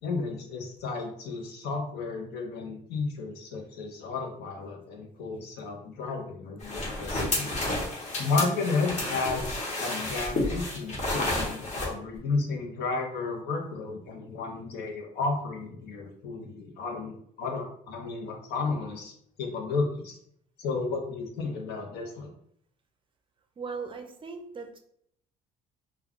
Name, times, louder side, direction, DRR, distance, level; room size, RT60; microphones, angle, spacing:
voice 1, 0.0-7.5 8.2-9.5 9.8-19.1 19.4-20.1 20.6-22.3, left 4 dB, 75° left, 1 dB, 0.8 m, -32 dB
sound 1, 6.6-11.9, left 2 dB, 45° left, 1.0 m, -31 dB
voice 2, 23.6-24.8, right 4 dB, 30° right, 4 dB, 0.5 m, -38 dB
2.3 x 2.2 x 3.6 m, 0.68 s
cardioid pair, 110°, 17 cm